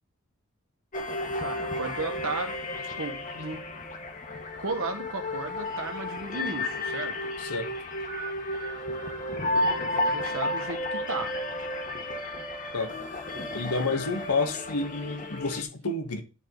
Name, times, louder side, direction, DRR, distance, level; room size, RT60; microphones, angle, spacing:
sound 1, 0.9-15.6, left 1 dB, 35° left, 1.5 m, -32 dB
voice 1, 1.4-2.5 3.0-3.6 4.6-7.3 9.8-11.3, right 3 dB, 65° right, 1.7 m, -34 dB
voice 2, 7.4-7.7 12.7-12.9 13.5-16.2, left 3 dB, 85° left, 1.8 m, -29 dB
11.0 x 5.1 x 4.0 m
head